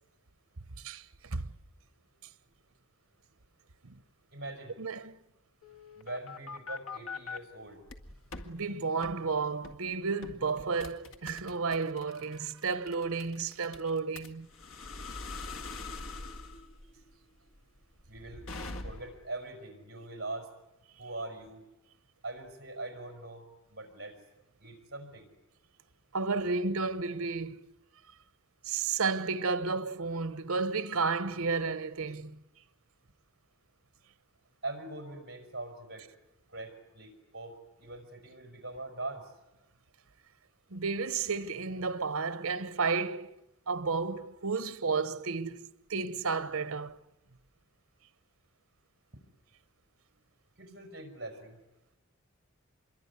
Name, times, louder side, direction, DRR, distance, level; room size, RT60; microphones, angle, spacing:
voice 1, 0.8-1.5 3.8-4.0 4.8-5.2 8.4-14.5 26.1-27.6 28.6-32.4 40.7-43.4 43.7-47.0, right 4 dB, 80° right, 1.0 m, -32 dB
voice 2, 4.3-4.8 6.0-7.8 18.1-18.5 18.8-20.5 21.0-21.6 22.2-23.4 23.7-24.2 24.6-25.3 34.6-36.1 36.5-37.5 37.8-39.3 50.6-51.6, right 2 dB, 50° right, 5.3 m, -42 dB
sound 1, 5.6-7.4 7.9-8.5 9.0-9.2 9.6-9.9 10.2-19.3, left 3 dB, 70° left, 2.0 m, -43 dB
26.0 x 22.5 x 9.7 m
head